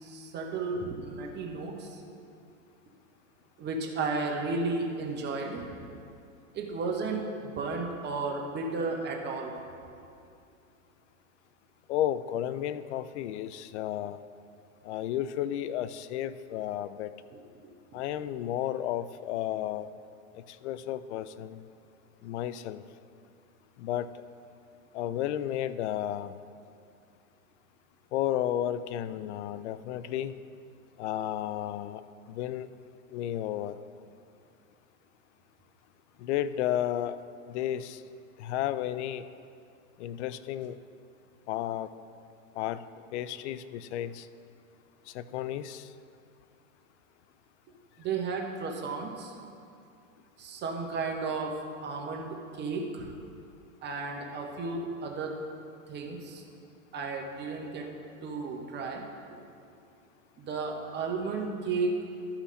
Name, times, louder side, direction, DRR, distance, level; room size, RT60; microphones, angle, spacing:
voice 1, 0.0-2.1 3.6-5.6 6.5-9.5 48.0-49.3 50.4-51.5 51.8-53.1 53.8-55.3 55.9-56.4 56.9-57.9 58.2-59.0 60.4-61.9, right 4 dB, 25° right, 1 dB, 1.1 m, -33 dB
voice 2, 11.9-14.2 14.9-17.1 17.9-19.9 20.6-21.6 22.2-22.8 23.8-24.1 24.9-26.3 28.1-30.3 31.0-32.0 32.3-32.7 33.1-33.8 36.2-37.2 37.5-38.0 38.4-39.2 40.0-40.8 41.5-41.9 42.6-42.8 43.1-44.3 45.1-45.9, left 11 dB, 55° left, 14 dB, 0.5 m, -32 dB
13.0 x 5.7 x 4.2 m, 2.5 s
hypercardioid pair, 125°, 43 cm